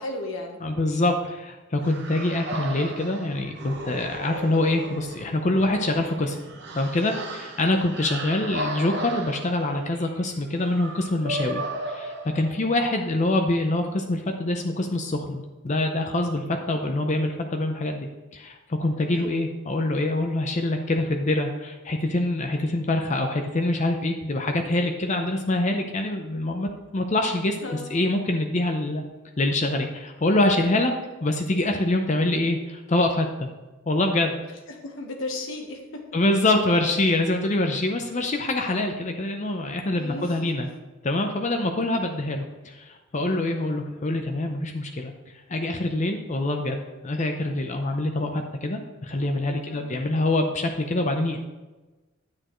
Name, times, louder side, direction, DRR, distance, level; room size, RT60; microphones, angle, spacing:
voice 1, 0.0-0.6 13.0-13.2 19.0-19.3 27.6-27.9 30.7-31.0 34.7-36.0 40.0-40.7 49.6-50.0, left 2 dB, 70° left, 1 dB, 1.3 m, -36 dB
voice 2, 0.6-6.4 6.7-27.6 27.9-29.0 29.4-30.9 31.2-33.5 33.9-34.3 36.1-40.7 41.0-45.1 45.5-51.4, left 2 dB, 35° left, 4 dB, 0.6 m, -25 dB
sound 1, 1.8-12.9, right 1 dB, 60° right, 1.2 m, -36 dB
10.0 x 8.6 x 3.1 m, 1.2 s
head